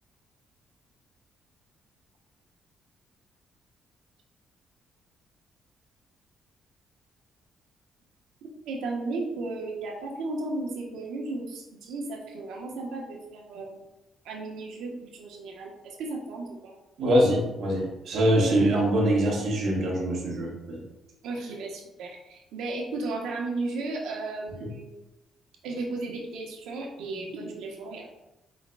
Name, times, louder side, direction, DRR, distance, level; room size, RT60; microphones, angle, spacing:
voice 1, 8.4-13.8 14.2-16.7 21.2-25.0 25.6-28.1, right 3 dB, 85° right, -1 dB, 1.0 m, -35 dB
voice 2, 17.0-20.8, right 1 dB, 70° right, -2 dB, 1.3 m, -23 dB
5.2 x 3.8 x 2.3 m, 0.96 s
cardioid pair, 90°, 0 cm